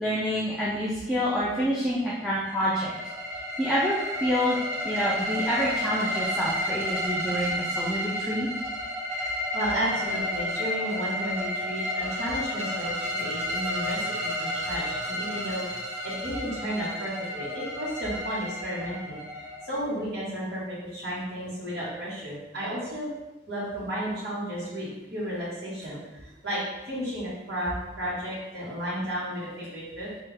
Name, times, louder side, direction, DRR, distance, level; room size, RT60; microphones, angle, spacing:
voice 1, 0.0-2.9 3.6-4.6 4.8-8.5, equal, ahead, -8 dB, 0.4 m, -27 dB
sound 1, 2.2-20.0, equal, 35° right, 0.7 m, -32 dB
voice 2, 9.5-23.1 23.5-30.1, equal, 65° right, -8 dB, 1.3 m, -33 dB
3.3 x 2.3 x 3.3 m, 1.0 s
head